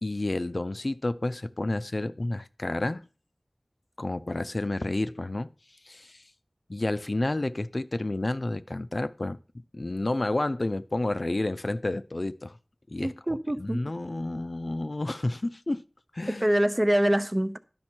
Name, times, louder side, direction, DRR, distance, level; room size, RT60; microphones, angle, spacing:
voice 1, 0.0-3.1 4.0-5.5 5.8-6.2 6.7-9.4 9.7-12.6 12.9-15.8 16.1-16.5, left 2 dB, 60° left, 0.4 m, -30 dB
voice 2, 13.0-13.8 16.4-17.6, right 1 dB, 30° right, 0.6 m, -24 dB
11.0 x 5.3 x 4.4 m
wide cardioid pair, 45°, 0 cm